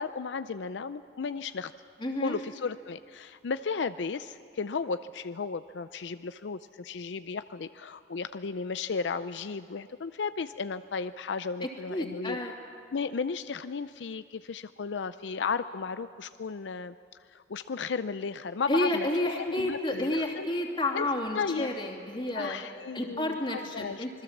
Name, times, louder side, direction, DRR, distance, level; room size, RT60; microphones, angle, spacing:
voice 1, 0.0-1.7 2.2-12.4 12.9-16.9 17.3-20.5 20.9-21.1 21.3-21.7 22.3-24.0, left 5 dB, 80° left, 12 dB, 0.5 m, -34 dB
voice 2, 2.0-2.4 11.6-12.5 18.7-22.6 22.9-24.1, left 1 dB, 25° left, 1 dB, 2.8 m, -30 dB
26.5 x 21.5 x 7.3 m, 2.4 s
head